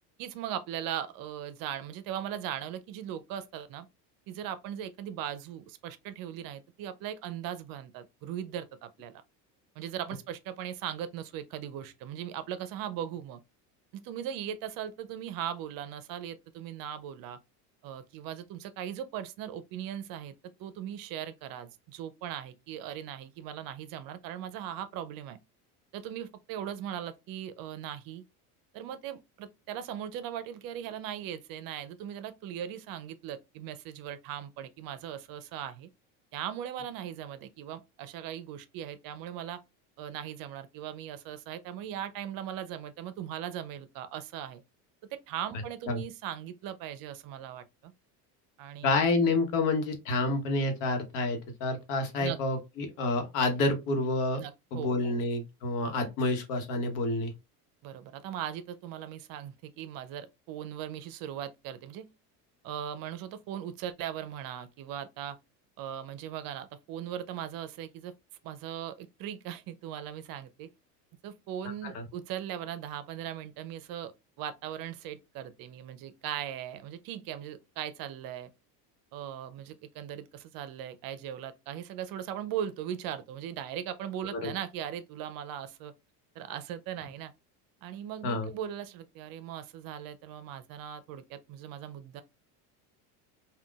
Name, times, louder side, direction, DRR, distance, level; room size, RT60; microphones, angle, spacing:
voice 1, 0.2-3.9 4.3-9.2 9.8-13.4 13.9-17.4 17.8-20.3 20.6-25.4 25.9-28.2 28.7-35.9 36.3-39.6 40.0-44.6 45.1-47.9 48.6-49.0 52.2-52.4 54.4-55.2 57.8-62.1 62.6-65.4 65.8-68.1 68.4-70.7 71.2-74.1 74.4-78.5 79.1-85.9 86.4-87.3 87.8-92.2, right 10 dB, 50° right, 0.5 m, -39 dB
voice 2, 48.8-54.4 54.7-57.3 71.8-72.0 84.3-84.5 88.2-88.5, left 2 dB, 80° left, 1.0 m, -29 dB
3.6 x 2.3 x 2.3 m
supercardioid pair, 105°, 45 cm